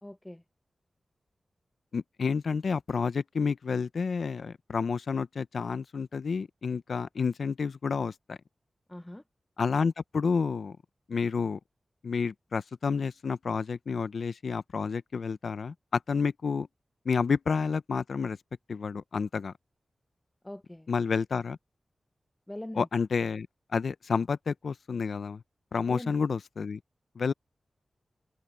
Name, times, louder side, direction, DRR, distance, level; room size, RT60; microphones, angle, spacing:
voice 1, 0.0-0.4 8.9-9.2 20.4-20.9 22.5-22.9 25.9-26.1, left 1 dB, 15° left, 0.8 m, -42 dB
voice 2, 1.9-8.4 9.6-10.8 11.1-11.6 12.0-16.7 17.1-18.4 18.7-19.5 20.9-21.6 22.8-23.5 23.7-25.4 25.7-26.8 27.2-27.3, left 5 dB, 80° left, 0.6 m, -30 dB
cardioid pair, 60°, 0 cm